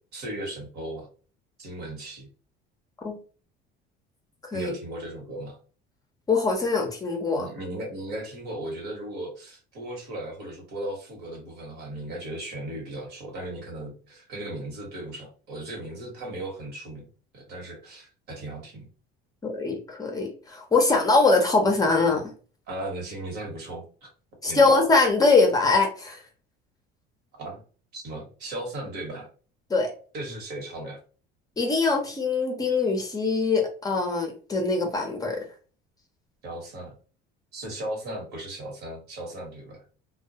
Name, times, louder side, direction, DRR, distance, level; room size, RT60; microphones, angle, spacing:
voice 1, 0.1-1.1 1.6-2.3 4.5-5.6 7.3-17.0 17.3-18.9 22.7-24.1 24.5-24.7 27.3-27.6 27.9-29.3 30.1-31.0 36.4-36.9 37.5-39.8, right 1 dB, 60° right, 1 dB, 1.1 m, -36 dB
voice 2, 6.3-7.5 19.4-22.2 24.4-26.2 29.7-29.9 31.6-35.4, left 3 dB, 20° left, 2 dB, 0.6 m, -22 dB
2.2 x 2.1 x 2.7 m, 0.38 s
cardioid pair, 135°, 19 cm